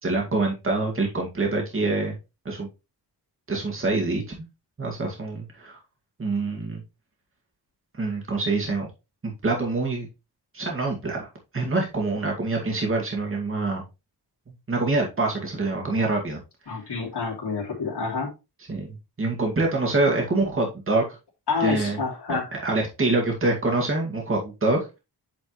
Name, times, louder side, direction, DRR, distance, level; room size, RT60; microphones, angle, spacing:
voice 1, 0.0-2.1 2.4-2.7 3.5-4.2 4.8-5.8 6.2-6.8 8.0-8.9 9.4-10.1 10.5-11.3 11.5-13.8 14.5-16.4 16.7-16.8 18.7-21.0 21.6-22.0 22.3-25.0, right 2 dB, 30° right, 0 dB, 2.2 m, -25 dB
voice 2, 16.7-18.3 21.5-22.5, left 4 dB, 75° left, -2 dB, 3.2 m, -28 dB
9.2 x 5.1 x 3.1 m, 0.26 s
wide cardioid pair, 165°, 40 cm